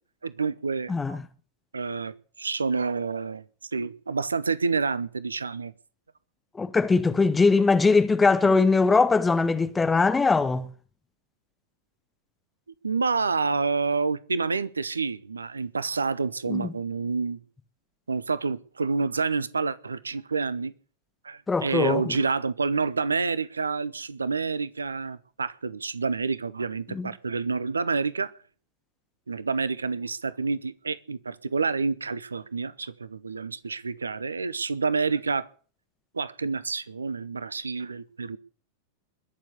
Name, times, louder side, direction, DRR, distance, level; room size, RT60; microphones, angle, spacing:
voice 1, 0.2-1.2 1.7-3.4 3.7-5.7 8.4-8.5 12.8-17.4 18.1-20.7 21.2-28.3 29.3-35.5 36.1-38.4, right 4 dB, 75° right, 0.8 m, -28 dB
voice 2, 0.9-1.2 6.6-10.7 16.5-16.7 21.5-22.1 26.9-27.1, left 4 dB, 15° left, 1.4 m, -21 dB
21.5 x 7.2 x 8.2 m
figure-of-eight pair, 90°, 0 cm